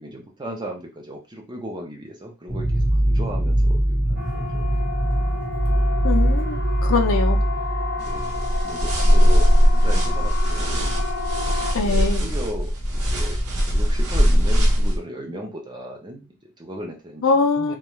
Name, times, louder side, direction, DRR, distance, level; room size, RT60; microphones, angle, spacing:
voice 1, 0.0-4.6 8.0-11.0 11.7-17.2 17.5-17.8, right 1 dB, 20° right, 0.6 m, -36 dB
sound 1, 2.5-8.4, right 1 dB, ahead, 0.9 m, -22 dB
Siren, 4.1-11.7, left 4 dB, 45° right, 0.9 m, -32 dB
voice 2, 6.0-7.4 11.7-12.3 17.2-17.8, left 4 dB, 60° left, 0.5 m, -22 dB
sound 2, 8.0-15.0, equal, 75° right, 0.9 m, -19 dB
2.4 x 2.2 x 3.0 m
head